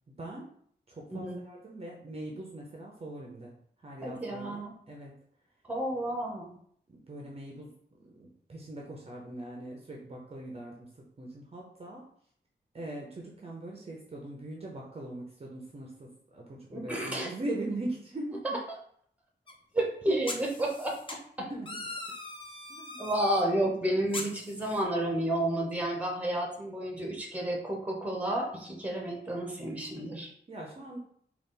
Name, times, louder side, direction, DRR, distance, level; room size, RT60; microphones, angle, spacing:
voice 1, 0.1-0.5 0.9-5.2 6.9-12.1 12.7-18.6 20.1-20.2 21.5-21.9 22.8-23.0 30.5-31.0, right 1 dB, 35° right, -1 dB, 0.6 m, -41 dB
voice 2, 4.0-4.7 5.7-6.6 16.7-17.3 18.4-18.6 19.7-21.0 21.4-21.5 23.0-30.3, right 1 dB, 10° right, 0 dB, 0.8 m, -31 dB
sound 1, 19.5-19.6 20.3-21.1 21.7-23.4 24.1-24.8, left 2 dB, 30° left, 0.6 m, -41 dB
3.9 x 2.4 x 3.7 m, 0.63 s
wide cardioid pair, 140°, 18 cm